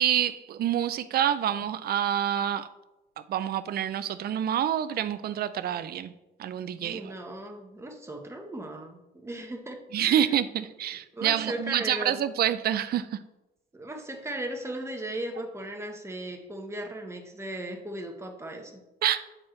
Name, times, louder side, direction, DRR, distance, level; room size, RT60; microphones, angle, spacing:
voice 1, 0.0-2.7 3.3-6.1 6.4-7.1 9.9-13.2 19.0-19.2, right 10 dB, 50° right, 12 dB, 0.4 m, -27 dB
voice 2, 6.8-10.3 10.9-12.2 13.7-18.8, right 1 dB, 15° right, 3 dB, 1.0 m, -37 dB
7.5 x 4.4 x 3.2 m, 0.98 s
cardioid pair, 90°, 20 cm